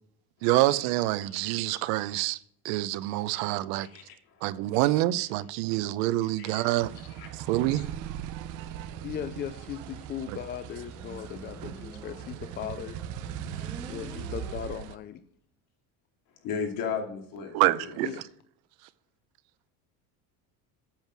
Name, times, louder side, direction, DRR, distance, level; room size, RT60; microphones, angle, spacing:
voice 1, 0.4-2.4 2.6-3.9 4.4-6.9 7.3-7.8 10.3-10.4 17.5-18.1, right 16 dB, 85° right, 0.7 m, -26 dB
voice 2, 3.8-4.4 6.4-6.7 7.2-7.8 13.5-13.7 16.4-17.5 17.8-17.9, left 6 dB, 55° left, 2.7 m, -36 dB
sound 1, 6.8-15.0, right 10 dB, 50° right, 0.7 m, -39 dB
voice 3, 9.0-13.0 13.9-15.2 18.0-18.2, left 9 dB, 25° left, 0.4 m, -38 dB
Motorcycle, 10.8-15.1, right 1 dB, 5° right, 1.7 m, -47 dB
8.8 x 7.4 x 6.0 m
cardioid pair, 170°, 40 cm